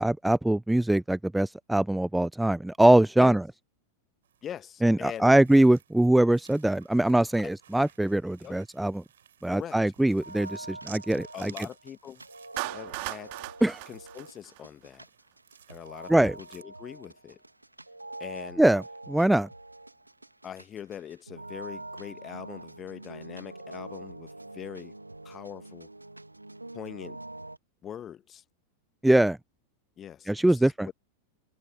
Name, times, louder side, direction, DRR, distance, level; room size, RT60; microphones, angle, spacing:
voice 1, 0.0-3.4 4.8-9.0 9.4-11.5 13.6-13.8 16.1-16.3 18.6-19.5 29.0-29.4 30.3-30.9, right 1 dB, 5° right, 0.7 m, -22 dB
sound 1, 4.2-16.6, right 9 dB, 65° right, 4.1 m, -55 dB
voice 2, 4.4-5.3 7.4-7.5 8.4-8.6 9.5-9.8 11.3-12.2 12.6-13.3 13.9-15.0 15.7-17.4 18.2-18.6 20.4-24.9 25.2-25.9 26.7-27.2 27.8-28.4 30.0-30.9, left 9 dB, 25° left, 1.6 m, -42 dB
sound 2, 10.2-27.6, right 2 dB, 85° right, 2.2 m, -45 dB
Clapping, 12.6-15.0, right 34 dB, 45° right, 2.7 m, -37 dB
figure-of-eight pair, 90°, 0 cm